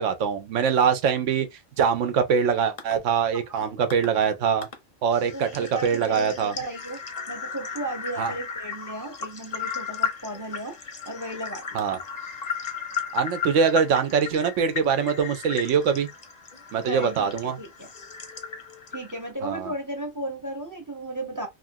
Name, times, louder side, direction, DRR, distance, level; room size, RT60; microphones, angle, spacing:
voice 1, 0.0-1.5 1.8-4.7 5.0-6.5 8.2-8.3 11.7-12.0 13.1-16.1 16.7-17.6 19.4-19.7, right 6 dB, 75° right, 1.0 m, -23 dB
sound 1, 2.8-2.9 3.9-4.1 4.6-4.8 5.1-19.3, left 7 dB, 40° left, 0.6 m, -35 dB
voice 2, 5.3-10.8 11.1-11.7 16.9-17.9 18.9-21.5, right 1 dB, 20° right, 0.5 m, -34 dB
2.9 x 2.4 x 2.6 m
omnidirectional pair, 1.3 m